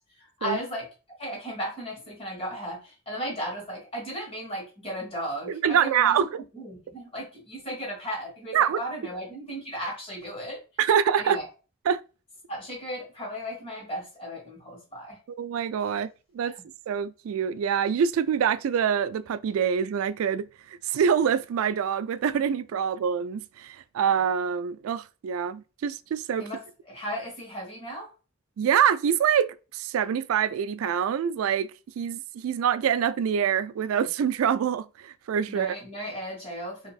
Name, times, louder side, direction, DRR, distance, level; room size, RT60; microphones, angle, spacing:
voice 1, 0.2-0.9 1.2-6.3 6.5-10.6 11.2-11.5 12.5-15.2 16.4-16.6 26.4-26.6 26.9-28.1 35.5-36.9, equal, 30° left, 1.8 m, -35 dB
voice 2, 5.5-6.3 8.5-8.8 10.8-11.4 11.9-12.0 15.4-16.1 16.3-16.5 16.9-20.5 20.9-26.4 28.6-31.7 32.0-35.8, right 8 dB, 85° right, 0.3 m, -25 dB
5.2 x 2.9 x 2.3 m
head